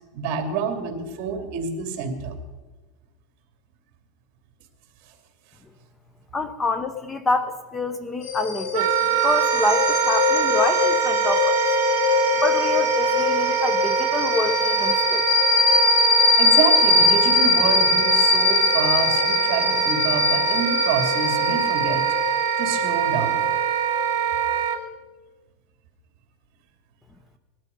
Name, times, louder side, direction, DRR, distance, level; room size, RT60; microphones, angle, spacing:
voice 1, 0.1-2.3 16.4-22.1 22.6-23.5, right 5 dB, 50° right, 5 dB, 2.7 m, -27 dB
voice 2, 6.3-11.6 12.4-15.3, left 2 dB, 15° left, 10 dB, 0.7 m, -27 dB
sound 1, 8.2-24.5, left 4 dB, 75° left, 3.1 m, -22 dB
Wind instrument woodwind instrument, 8.7-24.8, right 10 dB, 75° right, 1.1 m, -24 dB
19.5 x 12.0 x 5.3 m, 1.3 s
supercardioid pair, 155°, 0 cm